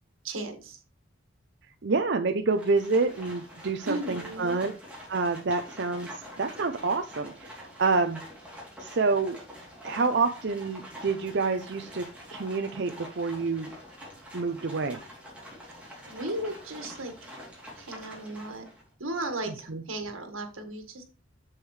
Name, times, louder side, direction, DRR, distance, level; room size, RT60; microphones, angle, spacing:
voice 1, 0.2-0.8 3.9-4.6 16.0-17.3 17.7-18.7 19.0-21.0, right 1 dB, 85° right, 6 dB, 1.7 m, -35 dB
voice 2, 1.8-4.7 5.1-8.2 8.8-9.4 9.8-12.0 12.3-13.7 14.3-15.0 19.7-19.8, right 4 dB, 55° right, 6 dB, 0.6 m, -27 dB
Livestock farm animals working animals, 2.5-18.9, equal, 5° right, 3.1 m, -46 dB
8.0 x 7.2 x 3.3 m, 0.35 s
head